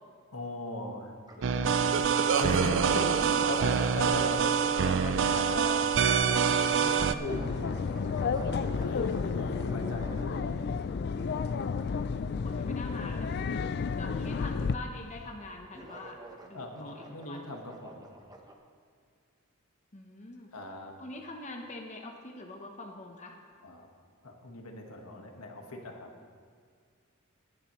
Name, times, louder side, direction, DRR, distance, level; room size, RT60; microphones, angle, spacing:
voice 1, 0.3-5.9 6.7-7.6 8.2-10.7 16.5-18.1 20.5-20.9 23.6-23.9 24.2-26.1, left 1 dB, 85° left, 2 dB, 1.5 m, -38 dB
sound 1, 1.3-5.0 5.6-5.8 6.1-10.7 11.1-11.5 13.4-13.6 14.9-15.1 15.4-18.5, right 2 dB, 20° right, 0.9 m, -48 dB
sound 2, 1.4-7.1, right 6 dB, 60° right, 0.4 m, -26 dB
sound 3, 7.3-14.8, left 5 dB, 50° left, 0.4 m, -31 dB
voice 2, 11.9-13.4 14.0-16.2 16.4-17.5 19.9-20.5 21.0-23.4, left 2 dB, 35° left, 1 dB, 0.9 m, -44 dB
19.0 x 10.5 x 3.1 m, 2.1 s
head